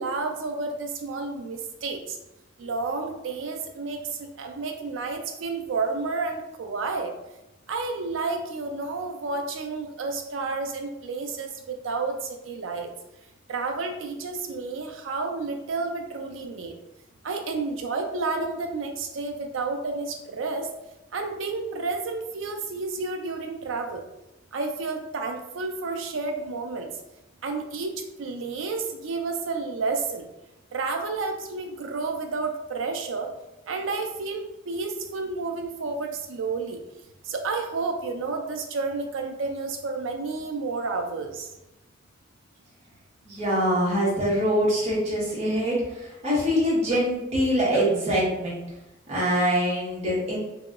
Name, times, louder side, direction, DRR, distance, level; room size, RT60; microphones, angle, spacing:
voice 1, 0.0-2.2 2.6-7.1 7.7-12.9 13.5-16.7 17.2-20.7 21.1-24.0 24.5-26.9 27.4-27.9 28.2-30.3 30.7-33.3 33.7-36.8 37.3-41.5, right 3 dB, 85° right, 4 dB, 0.5 m, -30 dB
voice 2, 43.2-45.8 46.2-48.6 49.1-50.4, equal, 35° right, -7 dB, 1.2 m, -24 dB
2.9 x 2.8 x 2.4 m, 0.94 s
head